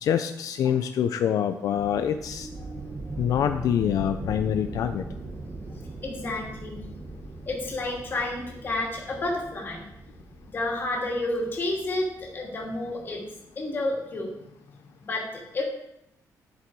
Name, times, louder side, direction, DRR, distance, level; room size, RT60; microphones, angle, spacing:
voice 1, 0.0-2.5 3.2-5.0, left 9 dB, 70° left, 8 dB, 0.5 m, -25 dB
sound 1, 1.8-13.2, right 2 dB, 30° right, 1.2 m, -40 dB
voice 2, 2.5-2.8 3.1-3.2 5.7-6.9 7.5-9.9 10.5-13.3 13.6-14.3 15.0-15.6, left 2 dB, 35° left, -1 dB, 2.6 m, -31 dB
11.0 x 6.8 x 4.7 m, 0.81 s
cardioid pair, 155°, 6 cm